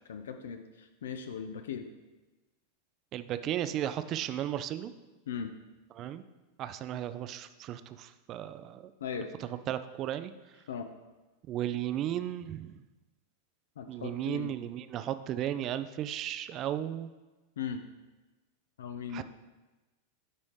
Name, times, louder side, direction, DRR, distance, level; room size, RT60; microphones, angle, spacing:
voice 1, 0.1-1.9 5.3-5.5 9.0-9.3 10.7-10.9 13.8-14.5 17.6-17.8 18.8-19.2, left 7 dB, 60° left, 8 dB, 0.4 m, -38 dB
voice 2, 3.1-4.9 6.0-6.2 6.6-8.9 9.4-10.3 11.5-12.8 13.9-17.1 19.1-19.2, right 11 dB, 35° right, 12 dB, 0.3 m, -35 dB
9.6 x 4.1 x 3.2 m, 1.2 s
figure-of-eight pair, 90°, 0 cm